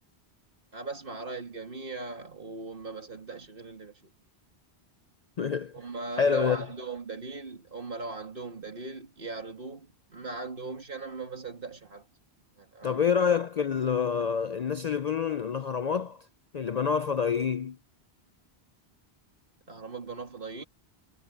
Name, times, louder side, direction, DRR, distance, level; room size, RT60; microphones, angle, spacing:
voice 1, 0.7-4.1 5.7-12.0 12.6-13.1 19.7-20.6, right 3 dB, 55° right, 2.6 m, -39 dB
voice 2, 5.4-5.7 6.2-6.6 12.8-16.3 16.5-17.8, left 6 dB, 50° left, 0.5 m, -27 dB
omnidirectional pair, 1.1 m